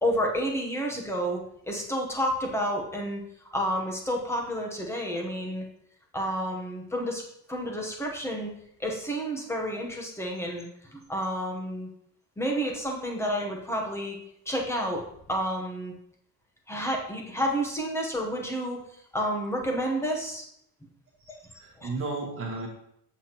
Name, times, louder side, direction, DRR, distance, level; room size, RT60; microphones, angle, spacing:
voice 1, 0.0-3.2 3.5-5.6 6.1-8.5 8.8-11.9 12.4-14.2 14.5-15.9 16.7-18.8 19.1-20.5 21.8-21.9, equal, 5° left, 0 dB, 1.0 m, -30 dB
voice 2, 21.2-22.7, right 3 dB, 35° right, -2 dB, 1.3 m, -34 dB
7.7 x 7.0 x 2.9 m, 0.74 s
cardioid pair, 175°, 38 cm